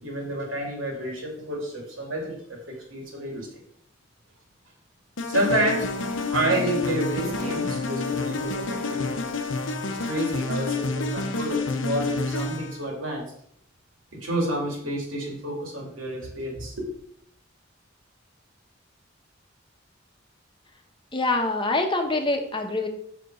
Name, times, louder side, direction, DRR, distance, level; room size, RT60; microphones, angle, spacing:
voice 1, 0.0-3.5 5.3-5.9 6.3-9.2 9.8-13.2 14.2-16.9, right 1 dB, 85° right, 0 dB, 2.9 m, -29 dB
sound 1, 5.2-12.8, left 3 dB, 80° left, 0.9 m, -29 dB
voice 2, 21.1-22.9, left 2 dB, 25° left, 4 dB, 1.0 m, -25 dB
6.0 x 5.0 x 6.2 m, 0.66 s
head